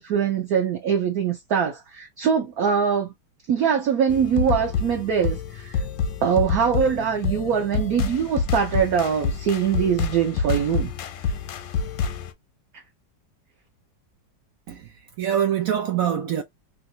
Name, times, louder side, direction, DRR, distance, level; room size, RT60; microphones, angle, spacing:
voice 1, 0.0-3.1 3.5-5.8 6.2-10.9, right 7 dB, 60° right, 1.2 m, -23 dB
sound 1, 4.1-12.3, left 5 dB, 85° left, 1.4 m, -28 dB
voice 2, 14.7-16.4, right 9 dB, 80° right, 0.8 m, -25 dB
3.2 x 2.6 x 2.8 m
omnidirectional pair, 2.0 m